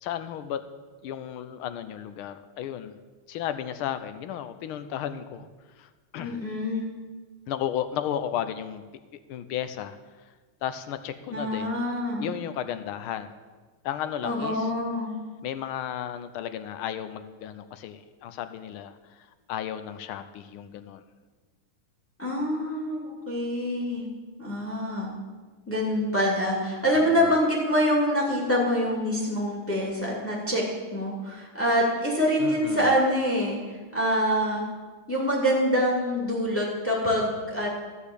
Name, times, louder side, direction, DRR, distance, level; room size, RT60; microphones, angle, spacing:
voice 1, 0.0-0.6 1.0-3.0 3.3-5.5 5.8-6.4 7.5-8.8 9.3-10.0 10.6-11.8 12.2-13.3 13.8-14.7 15.4-19.0 19.5-21.0 26.9-27.1 32.4-32.9, left 10 dB, 85° left, 11 dB, 1.5 m, -34 dB
voice 2, 6.2-6.9 11.3-12.3 14.2-15.1 22.2-24.1 24.4-25.1 25.7-30.6 30.9-34.6 35.1-37.7, equal, 5° left, -2 dB, 2.4 m, -25 dB
13.5 x 5.0 x 8.4 m, 1.3 s
omnidirectional pair, 2.3 m